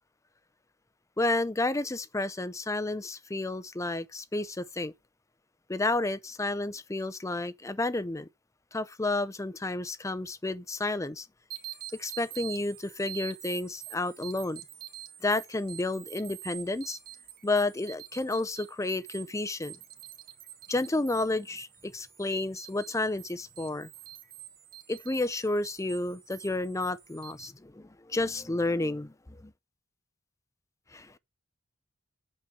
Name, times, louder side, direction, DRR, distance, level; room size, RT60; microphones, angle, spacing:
voice 1, 1.2-4.9 5.7-8.3 8.7-11.3 11.9-14.6 15.2-17.0 17.4-19.7 20.7-23.9 24.9-29.5 30.9-31.2, left 2 dB, 15° left, 0.5 m, -31 dB
sound 1, 11.5-27.5, right 12 dB, 45° right, 1.5 m, -47 dB
8.5 x 6.7 x 4.8 m
head